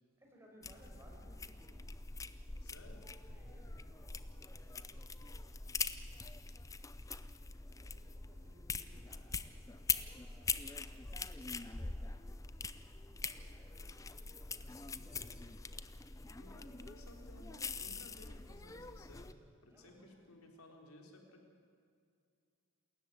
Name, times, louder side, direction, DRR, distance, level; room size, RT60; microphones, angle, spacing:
voice 1, 0.2-1.9 3.2-5.8 7.5-16.0 18.7-18.8 19.1-19.2 19.7-20.2, equal, 10° right, -1 dB, 5.0 m, -64 dB
sound 1, 0.6-19.3, left 4 dB, 15° left, 0.6 m, -43 dB
voice 2, 2.6-3.0 14.7-15.1 16.4-19.3 19.6-21.4, left 1 dB, 90° left, 2 dB, 3.7 m, -57 dB
28.0 x 14.0 x 9.5 m, 2.3 s
head